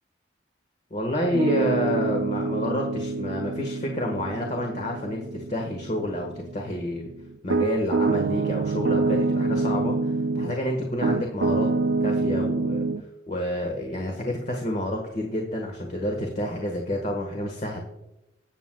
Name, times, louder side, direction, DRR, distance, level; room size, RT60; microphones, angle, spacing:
voice 1, 0.9-7.1 7.4-11.7 12.0-12.8 13.3-17.8, left 1 dB, 40° left, 2 dB, 1.3 m, -29 dB
Piano, 1.2-10.6 11.0-13.0, right 3 dB, 65° right, 0.5 m, -26 dB
18.5 x 7.6 x 2.2 m, 0.92 s
head